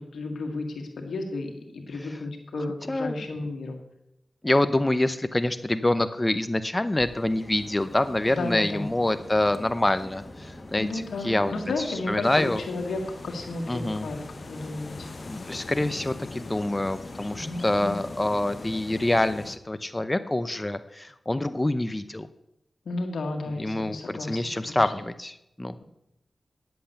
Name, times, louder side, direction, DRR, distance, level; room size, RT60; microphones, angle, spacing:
voice 1, 0.1-3.8 8.3-8.9 10.7-14.2 14.5-14.9 17.3-18.0 22.8-24.9, left 2 dB, 90° left, 2 dB, 1.8 m, -33 dB
voice 2, 4.4-12.6 13.7-14.1 15.3-22.3 23.6-25.7, left 1 dB, 25° left, 12 dB, 0.7 m, -26 dB
sound 1, 6.9-19.5, left 2 dB, 40° left, 1.8 m, -44 dB
sound 2, 12.2-19.6, left 3 dB, 55° left, 0.7 m, -44 dB
10.0 x 7.8 x 6.9 m, 0.84 s
cardioid pair, 50°, 0 cm